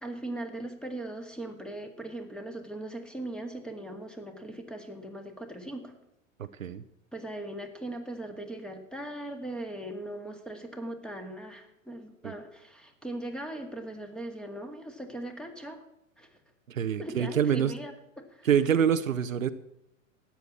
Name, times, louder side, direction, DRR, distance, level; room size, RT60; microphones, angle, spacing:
voice 1, 0.0-5.9 7.1-15.8 16.2-16.4 17.0-18.6, right 1 dB, ahead, 5 dB, 1.9 m, -39 dB
voice 2, 16.7-17.7 18.4-19.5, right 8 dB, 75° right, 12 dB, 0.8 m, -25 dB
13.0 x 9.2 x 7.1 m, 0.84 s
figure-of-eight pair, 95°, 40 cm